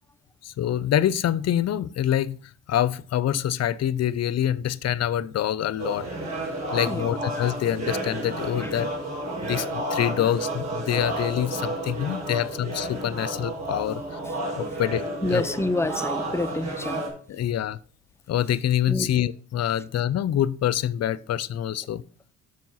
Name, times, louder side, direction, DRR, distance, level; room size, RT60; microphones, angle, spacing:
voice 1, 0.4-2.4 2.7-6.1 6.7-8.9 9.4-14.2 14.6-15.0 15.3-15.4 17.3-17.8 18.3-22.0, left 11 dB, 55° left, 0.6 m, -26 dB
sound 1, 5.8-17.1, right 1 dB, 60° right, 4.8 m, -31 dB
voice 2, 15.2-17.1 18.9-19.1, left 2 dB, 10° left, 0.6 m, -28 dB
7.5 x 6.3 x 5.5 m
cardioid pair, 90°, 30 cm